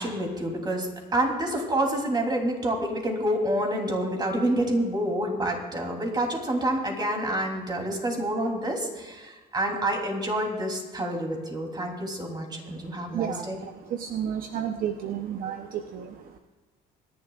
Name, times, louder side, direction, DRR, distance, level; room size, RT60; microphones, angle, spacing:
voice 1, 0.0-13.6, right 1 dB, 25° right, 1 dB, 3.2 m, -28 dB
voice 2, 13.1-16.4, right 9 dB, 60° right, 5 dB, 0.8 m, -32 dB
25.5 x 11.0 x 2.4 m, 1.3 s
cardioid pair, 110°, 17 cm